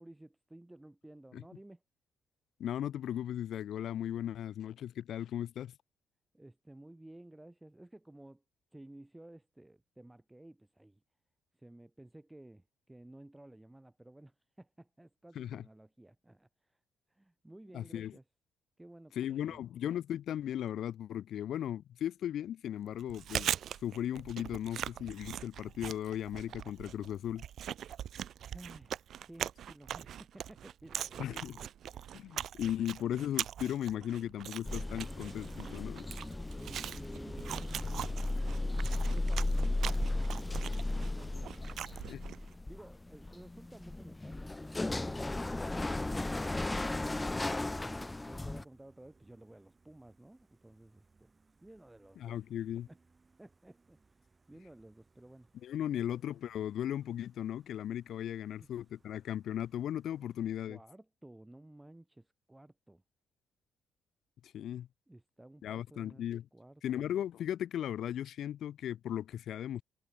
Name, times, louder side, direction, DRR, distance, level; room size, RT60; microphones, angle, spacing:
voice 1, 0.0-1.8 6.3-8.4 8.7-11.0 11.5-16.8 17.1-18.2 18.8-19.6 28.5-33.0 36.5-40.7 41.0-42.3 42.7-45.4 47.0-51.3 51.6-52.4 52.9-53.0 53.4-55.5 55.9-56.1 58.6-58.7 60.4-63.0 65.1-66.3 66.5-67.1, right 1 dB, 10° right, 3.3 m, -55 dB
voice 2, 2.6-5.7 15.4-15.6 17.7-18.1 19.2-23.5 23.8-27.5 31.2-31.5 32.1-36.0 42.1-42.2 52.2-52.9 55.6-60.8 64.4-64.9 65.6-66.4 66.8-69.8, left 10 dB, 70° left, 1.8 m, -37 dB
Chewing mastication, 23.0-42.5, right 10 dB, 65° right, 0.8 m, -41 dB
sound 1, 34.6-48.6, left 2 dB, 15° left, 0.7 m, -35 dB
Gull seagull, 43.1-60.5, right 3 dB, 25° right, 6.4 m, -69 dB
cardioid pair, 90°, 0 cm